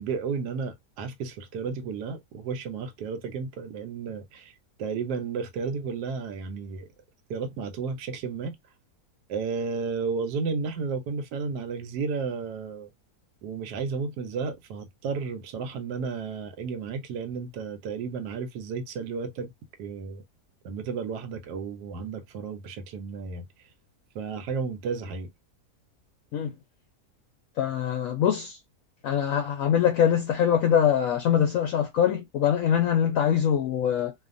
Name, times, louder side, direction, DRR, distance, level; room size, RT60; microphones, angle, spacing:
voice 1, 0.0-4.5 4.8-6.9 7.3-8.6 9.3-12.9 13.4-19.5 19.8-20.2 20.6-23.4 24.1-25.3, right 5 dB, 85° right, 1.2 m, -33 dB
voice 2, 27.6-28.6 29.0-34.1, left 9 dB, 70° left, 0.9 m, -23 dB
2.6 x 2.4 x 2.4 m
omnidirectional pair, 1.7 m